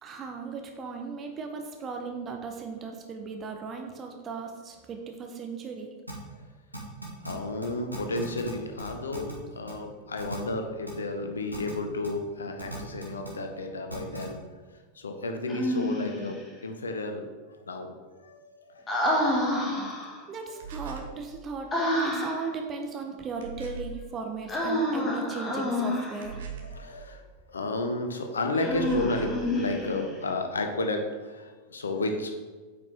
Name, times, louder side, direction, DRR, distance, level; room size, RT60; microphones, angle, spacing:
voice 1, 0.0-5.9 20.3-21.7 22.0-26.4, right 5 dB, 25° right, 4 dB, 0.8 m, -37 dB
sound 1, 6.1-6.2 6.7-7.3 7.6-7.7 7.9-8.5 8.8-9.3 9.7-9.8 10.2-10.4 10.9-11.0 11.5-11.7 12.0-12.1 12.6-13.3 13.9-14.2, right 1 dB, 90° right, 1.7 m, -38 dB
voice 2, 7.2-14.5 14.9-17.3 17.7-18.8 19.4-19.9 26.6-32.3, left 2 dB, 70° left, 5 dB, 0.8 m, -32 dB
Human voice, 15.5-16.4 18.9-20.2 21.7-22.5 24.5-26.3 28.5-30.1, left 1 dB, 20° left, 1.7 m, -28 dB
sound 2, 20.6-21.2 23.4-24.0 26.2-26.9 28.7-29.4, right 4 dB, 60° right, 1.1 m, -39 dB
8.6 x 5.2 x 3.5 m, 1.4 s
figure-of-eight pair, 90°, 0 cm